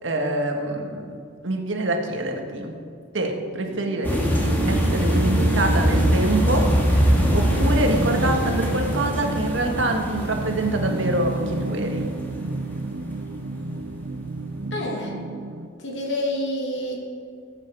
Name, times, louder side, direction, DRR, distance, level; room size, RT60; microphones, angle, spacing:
voice 1, 0.0-2.8 3.1-12.1, right 1 dB, 85° right, 3 dB, 1.7 m, -26 dB
sound 1, 3.7-15.7, right 2 dB, 60° right, 0.6 m, -31 dB
sound 2, 4.0-13.1 13.6-13.8 14.1-14.2, equal, 10° left, 2.2 m, -23 dB
voice 2, 14.7-15.2 15.8-17.0, left 1 dB, 70° left, 0 dB, 2.6 m, -28 dB
17.0 x 8.6 x 5.1 m, 2.4 s
head